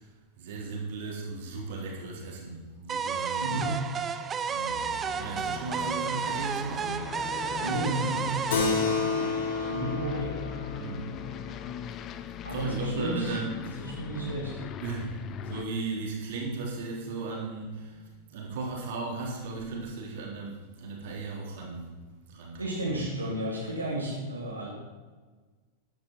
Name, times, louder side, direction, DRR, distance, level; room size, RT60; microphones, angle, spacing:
voice 1, 0.4-3.6 4.5-4.8 5.2-7.1 10.7-11.2 12.1-12.2 12.5-13.8 14.8-21.9 22.3-22.9, right 3 dB, 55° right, -1 dB, 3.4 m, -36 dB
sound 1, 2.9-9.9, right 6 dB, 25° right, 0.8 m, -32 dB
Aircraft, 4.7-15.7, left 9 dB, 35° left, 0.6 m, -40 dB
voice 2, 7.6-8.2 9.7-10.3 12.4-13.4 13.6-14.6 22.6-24.7, right 1 dB, 80° right, -4 dB, 2.7 m, -32 dB
Keyboard (musical), 8.5-13.4, left 4 dB, 60° left, 2.2 m, -32 dB
13.5 x 10.5 x 4.5 m, 1.4 s
figure-of-eight pair, 90°, 0 cm